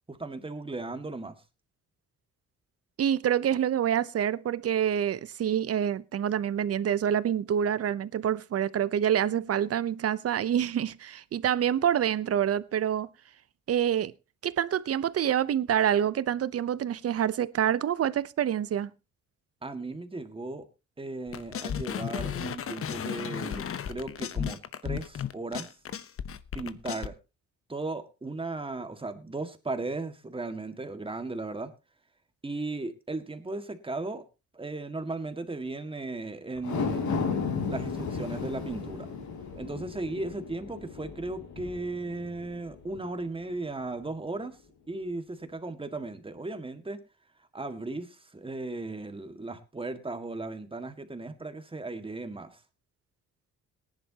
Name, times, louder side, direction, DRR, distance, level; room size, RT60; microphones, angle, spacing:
voice 1, 0.1-1.4 19.6-20.7 21.0-25.7 26.5-27.1 27.7-31.7 32.4-34.2 34.5-37.3 37.7-39.1 39.6-44.6 44.9-47.0 47.5-52.6, right 2 dB, 15° right, 1.9 m, -36 dB
voice 2, 3.0-13.1 13.7-14.1 14.4-18.9, right 9 dB, 50° right, 0.8 m, -27 dB
sound 1, 21.3-27.1, left 8 dB, 45° left, 0.9 m, -34 dB
sound 2, 36.6-43.1 43.5-43.6, left 5 dB, 70° left, 4.1 m, -34 dB
18.5 x 10.5 x 2.9 m
cardioid pair, 90°, 30 cm